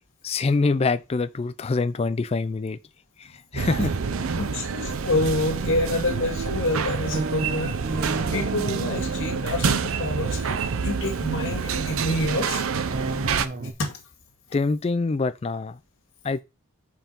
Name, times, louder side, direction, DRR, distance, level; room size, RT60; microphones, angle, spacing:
voice 1, 0.2-2.8 3.2-3.8 14.5-15.8 16.2-16.4, left 3 dB, 30° left, 0.3 m, -25 dB
sound 1, 3.5-11.8 12.9-13.7, right 2 dB, 40° right, 0.8 m, -35 dB
sound 2, 3.6-13.5, right 5 dB, 65° right, 0.5 m, -27 dB
voice 2, 4.4-7.8 8.2-12.6 13.8-14.0, left 2 dB, 60° left, 2.0 m, -27 dB
5.5 x 4.6 x 5.3 m
head